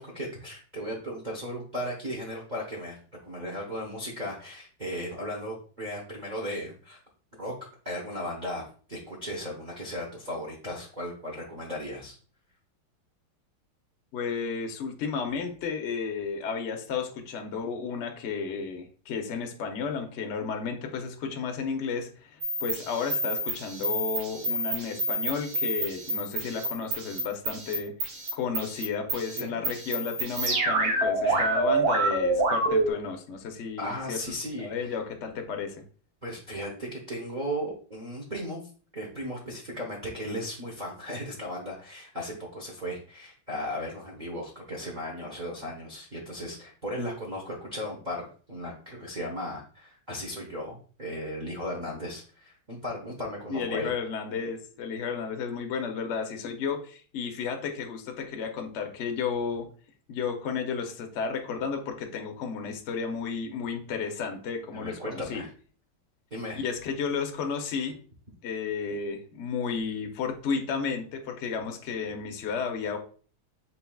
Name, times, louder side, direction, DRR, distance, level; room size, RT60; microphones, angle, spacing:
voice 1, 0.0-3.0 3.2-7.0 7.4-7.5 7.8-12.1 29.1-29.6 31.2-31.5 33.8-34.9 36.2-53.9 64.7-65.5 66.3-66.6, equal, 35° right, -1 dB, 0.7 m, -36 dB
voice 2, 14.1-27.9 28.3-35.8 53.5-59.7 60.1-65.4 66.5-68.0 68.4-73.0, left 5 dB, 65° left, 4 dB, 0.7 m, -33 dB
sound 1, 22.4-32.9, right 2 dB, 75° right, 2.0 m, -28 dB
5.8 x 4.0 x 2.3 m, 0.42 s
omnidirectional pair, 2.2 m